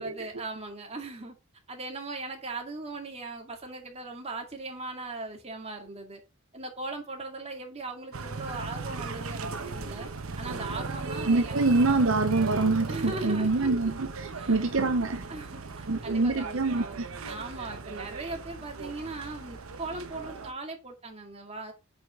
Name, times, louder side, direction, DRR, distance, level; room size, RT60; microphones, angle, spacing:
voice 1, 0.0-1.4 1.7-6.2 6.5-10.1 10.4-11.7 12.9-13.9 14.4-14.5 15.3-17.0 17.3-21.7, right 2 dB, 30° right, 2.2 m, -39 dB
sound 1, 8.1-20.5, right 3 dB, 80° right, 1.1 m, -37 dB
voice 2, 11.3-15.3 15.9-17.0, right 3 dB, 65° right, 0.8 m, -25 dB
8.3 x 5.1 x 3.7 m
head